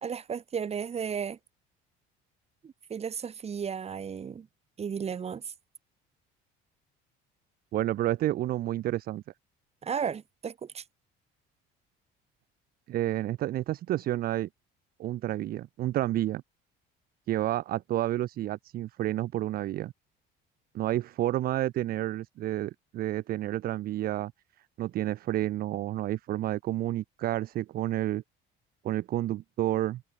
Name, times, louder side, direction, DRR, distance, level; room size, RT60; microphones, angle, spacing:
voice 1, 0.0-1.4 2.6-4.5 4.8-5.5 9.8-10.8, right 7 dB, 30° right, 2.0 m, -34 dB
voice 2, 7.7-9.2 12.9-14.5 15.0-16.4 17.3-19.9 20.7-24.3 24.8-28.2 28.8-30.0, right 14 dB, 45° right, 0.5 m, -30 dB
cardioid pair, 125°, 21 cm